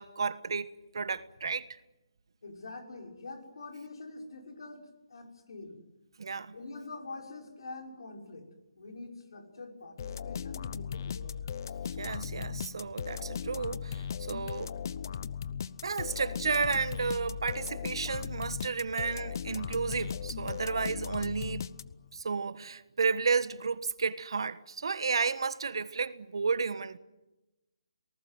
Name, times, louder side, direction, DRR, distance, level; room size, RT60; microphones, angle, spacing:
voice 1, 0.0-1.8 6.2-6.5 12.0-14.8 15.8-21.7 22.1-27.0, right 5 dB, 70° right, 1.4 m, -32 dB
voice 2, 2.4-4.8 5.1-5.8 6.5-8.5 8.8-11.4, left 3 dB, 70° left, 6.2 m, -45 dB
sound 1, 10.0-22.2, left 7 dB, 45° left, 0.8 m, -38 dB
27.0 x 19.5 x 9.5 m
hypercardioid pair, 160°, 3 cm